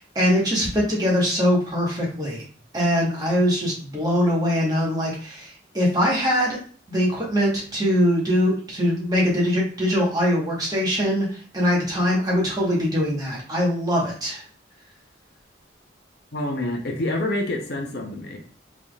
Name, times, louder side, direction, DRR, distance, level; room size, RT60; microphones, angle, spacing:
voice 1, 0.0-2.4 2.7-6.6 6.9-14.4, equal, 20° right, -4 dB, 1.2 m, -22 dB
voice 2, 16.3-18.4, left 1 dB, 60° left, 2 dB, 0.7 m, -27 dB
4.1 x 3.4 x 2.4 m, 0.43 s
head